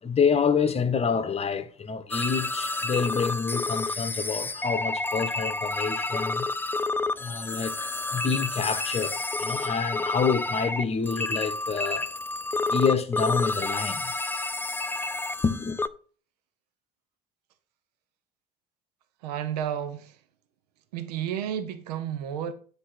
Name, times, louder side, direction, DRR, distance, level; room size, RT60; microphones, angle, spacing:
voice 1, 0.0-6.5 7.1-12.1 12.7-14.1 15.4-15.8, left 6 dB, 30° left, 1.1 m, -27 dB
sound 1, 2.1-15.9, left 2 dB, 10° left, 0.5 m, -30 dB
voice 2, 19.2-20.2 20.9-22.5, right 9 dB, 75° right, 0.9 m, -31 dB
9.8 x 3.6 x 5.7 m
hypercardioid pair, 60°, 20 cm